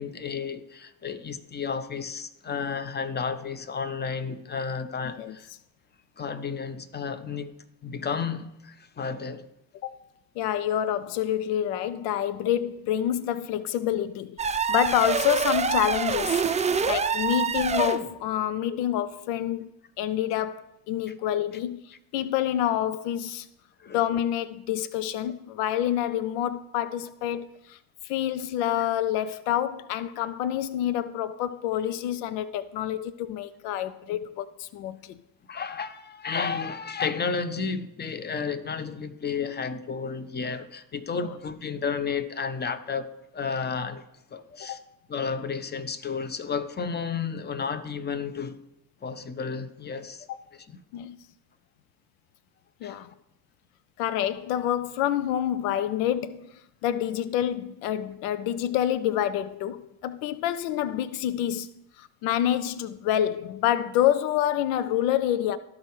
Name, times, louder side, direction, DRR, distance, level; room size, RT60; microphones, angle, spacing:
voice 1, 0.0-5.5 6.2-7.5 7.8-9.5 21.1-21.2 23.8-24.0 35.5-44.0 44.3-44.8 45.1-48.6 49.0-50.3 50.5-50.8 52.8-53.0, left 5 dB, 20° left, 0.8 m, -32 dB
voice 2, 10.4-14.4 14.7-16.4 16.9-19.7 20.0-23.5 23.9-27.8 28.0-35.2 44.7-44.8 50.3-50.4 50.9-51.2 52.8-53.1 54.0-56.5 56.8-61.7 62.0-65.6, left 11 dB, 75° left, 0.5 m, -27 dB
sound 1, 14.4-18.1, right 6 dB, 15° right, 0.5 m, -26 dB
13.5 x 4.8 x 3.2 m
hypercardioid pair, 50°, 49 cm